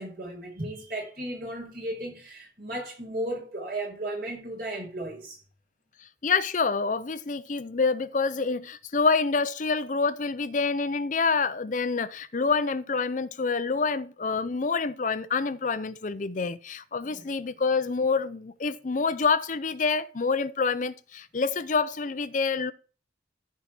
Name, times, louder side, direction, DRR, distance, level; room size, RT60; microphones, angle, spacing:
voice 1, 0.0-5.4 17.0-17.2, right 1 dB, 55° right, 5.3 m, -35 dB
voice 2, 6.2-22.7, left 4 dB, 45° left, 0.6 m, -27 dB
14.0 x 4.8 x 6.0 m
head